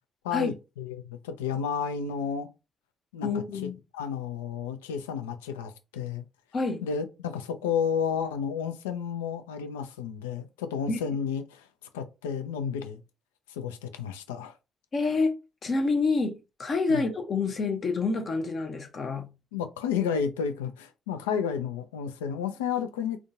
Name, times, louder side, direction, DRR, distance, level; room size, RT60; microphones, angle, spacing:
voice 1, 0.2-2.5 3.1-3.4 3.9-6.2 6.8-11.7 11.9-13.0 13.5-14.5 16.9-17.0 19.5-23.2, left 7 dB, 75° left, 0.3 m, -31 dB
voice 2, 3.2-3.8 6.5-6.8 10.9-11.0 14.9-15.4 15.6-19.3, left 3 dB, 45° left, 0.7 m, -27 dB
3.6 x 2.3 x 2.5 m
figure-of-eight pair, 40°, 0 cm